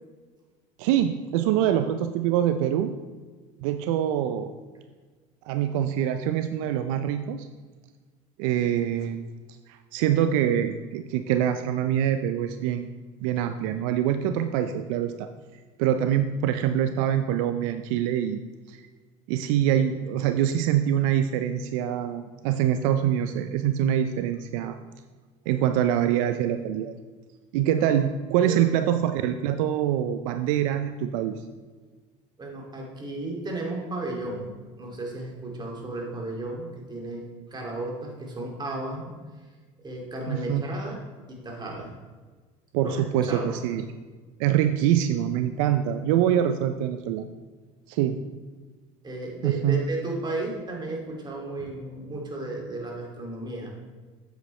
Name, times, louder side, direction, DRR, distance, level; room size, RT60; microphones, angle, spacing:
voice 1, 0.8-2.9 3.6-4.5 5.5-7.5 8.4-9.3 9.7-12.9 13.2-15.3 15.8-18.4 18.7-18.8 19.3-24.8 25.5-26.9 27.5-31.3 40.3-40.6 42.7-43.8 44.4-47.2 47.9-48.2 49.4-49.8, right 10 dB, 75° right, 9 dB, 0.4 m, -24 dB
voice 2, 32.4-39.1 39.8-41.0 41.3-42.0 42.8-43.5 49.0-53.7, right 2 dB, 25° right, 0 dB, 2.3 m, -34 dB
8.3 x 7.9 x 3.2 m, 1.4 s
supercardioid pair, 90°, 17 cm